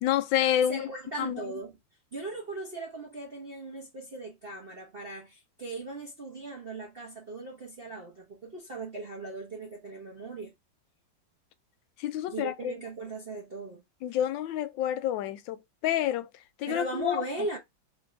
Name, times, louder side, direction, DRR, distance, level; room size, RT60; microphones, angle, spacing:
voice 1, 0.0-0.9 1.2-1.4 12.0-12.7 14.0-16.3 16.6-17.2, left 11 dB, 80° left, 1.3 m, -28 dB
voice 2, 0.6-1.7 2.1-10.5 12.3-13.8 16.7-17.6, right 2 dB, 40° right, 1.0 m, -38 dB
4.0 x 3.7 x 3.3 m
omnidirectional pair, 2.0 m